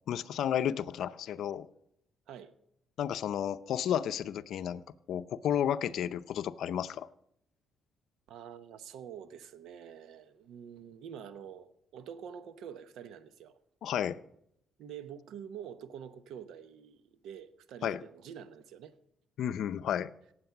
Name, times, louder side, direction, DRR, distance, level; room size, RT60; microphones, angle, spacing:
voice 1, 0.1-1.7 3.0-7.1 13.8-14.2 17.8-18.0 19.4-20.1, left 9 dB, 75° left, 0.5 m, -32 dB
voice 2, 8.3-13.5 14.8-19.0, right 8 dB, 85° right, 1.0 m, -47 dB
17.0 x 8.0 x 5.8 m
cardioid pair, 90°, 0 cm